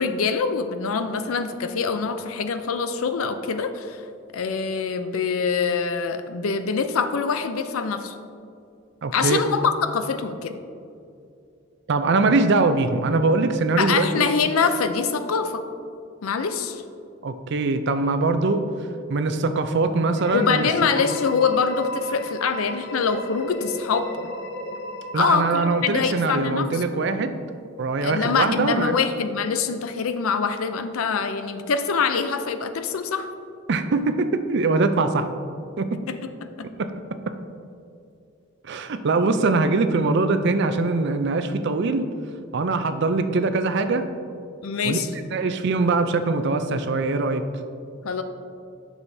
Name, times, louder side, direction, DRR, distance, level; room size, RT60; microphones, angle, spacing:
voice 1, 0.0-4.0 4.3-8.2 9.1-10.5 13.8-15.6 16.2-16.8 20.3-24.1 25.2-26.8 28.0-33.3 36.1-36.7 44.6-45.1 48.0-48.2, left 5 dB, 85° left, 10 dB, 0.5 m, -24 dB
voice 2, 9.0-9.4 11.9-14.3 17.2-18.6 19.1-20.7 25.1-27.3 27.8-29.0 33.7-35.3 35.8-36.0 36.6-36.7 38.6-42.1 42.5-44.1 44.8-45.0 45.3-47.4, right 3 dB, 55° right, 9 dB, 0.4 m, -22 dB
sound 1, 20.1-26.9, left 1 dB, 55° left, 0.8 m, -36 dB
10.5 x 6.2 x 2.7 m, 2.5 s
head